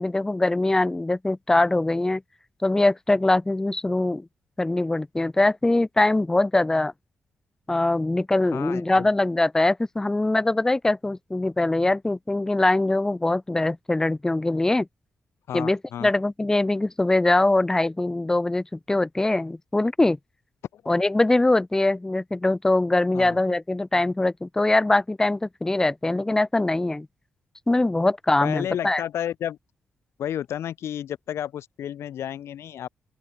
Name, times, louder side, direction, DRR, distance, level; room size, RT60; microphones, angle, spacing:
voice 1, 0.0-2.2 2.6-4.3 4.6-6.9 7.7-14.9 15.5-20.2 20.9-27.1 27.7-29.0, left 2 dB, 10° left, 0.3 m, -22 dB
voice 2, 8.5-9.1 15.5-16.1 20.7-20.8 23.1-23.4 28.4-29.6 30.2-32.9, left 10 dB, 85° left, 1.4 m, -31 dB
open air
cardioid pair, 85°, 4 cm